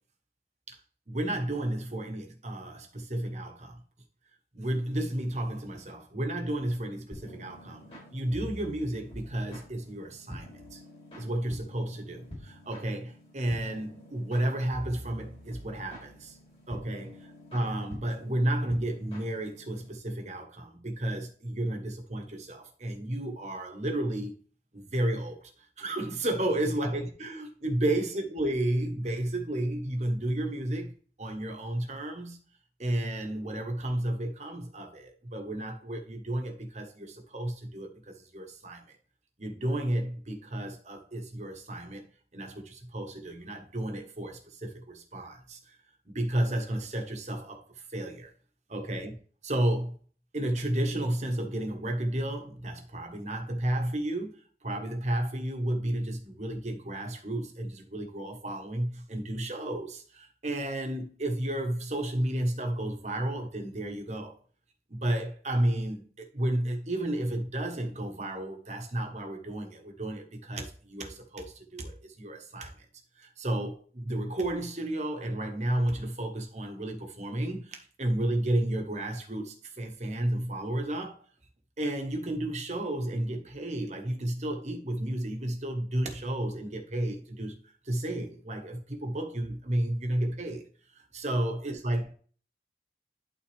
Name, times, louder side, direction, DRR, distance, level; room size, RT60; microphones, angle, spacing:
voice 1, 1.1-3.8 4.5-10.8 11.2-16.4 16.7-24.3 24.7-25.5 25.8-30.9 31.2-32.4 32.8-39.0 39.4-42.0 42.3-45.8 46.1-48.3 48.7-49.2 49.4-50.0 50.3-64.4 64.9-72.8 73.2-81.2 81.8-87.5 87.8-90.6 90.9-92.1, right 1 dB, 40° right, 1.3 m, -32 dB
sound 1, 7.1-19.9, equal, 35° left, 3.6 m, -47 dB
11.5 x 4.1 x 3.4 m
head